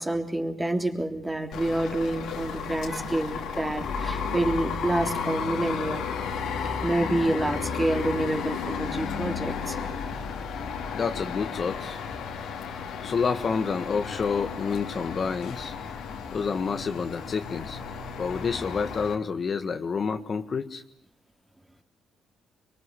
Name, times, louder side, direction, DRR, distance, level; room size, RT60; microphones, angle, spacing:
voice 1, 0.0-6.0 6.8-9.8, right 1 dB, 15° right, 5 dB, 3.2 m, -28 dB
sound 1, 1.5-19.1, left 6 dB, 80° left, 3.3 m, -33 dB
voice 2, 10.9-12.0 13.0-15.7 16.3-17.8 18.2-20.8, left 5 dB, 45° left, 8 dB, 1.6 m, -29 dB
24.0 x 23.5 x 9.9 m, 0.70 s
cardioid pair, 90°, 0 cm